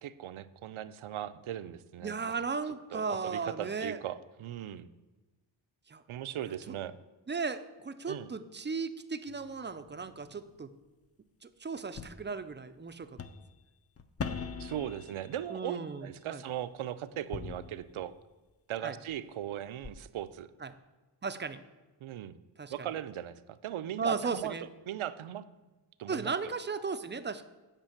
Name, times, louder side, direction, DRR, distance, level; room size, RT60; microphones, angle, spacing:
voice 1, 0.0-2.3 2.9-4.9 6.1-6.9 8.1-8.3 14.6-18.1 18.7-20.5 22.0-22.4 22.7-24.6 24.9-25.5 26.0-26.5, right 11 dB, 80° right, 13 dB, 0.6 m, -38 dB
voice 2, 2.0-4.0 5.9-6.0 6.7-6.8 7.3-10.7 11.4-13.1 15.5-16.4 18.8-19.0 20.6-20.7 21.2-21.6 22.6-22.7 24.0-24.6 26.1-27.5, right 5 dB, 25° right, 11 dB, 0.3 m, -36 dB
sound 1, 9.3-10.6 11.9-12.1 13.0-13.5 14.0-15.9 17.1-18.2 19.1-19.2 19.8-19.9, left 5 dB, 30° left, 0.5 m, -42 dB
9.1 x 5.2 x 7.1 m, 1.2 s
wide cardioid pair, 170°, 48 cm